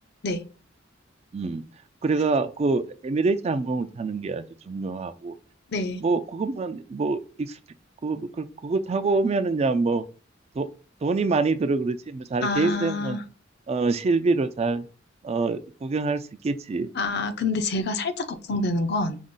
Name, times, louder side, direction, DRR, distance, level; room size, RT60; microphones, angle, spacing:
voice 1, 1.3-1.6 2.0-5.3 6.0-7.6 8.0-10.0 10.6-10.7 11.0-13.2 13.7-14.9 15.2-16.9, right 3 dB, 35° right, 0.3 m, -25 dB
voice 2, 12.4-13.2 16.9-19.2, left 2 dB, 55° left, 0.6 m, -27 dB
5.2 x 2.4 x 3.7 m
head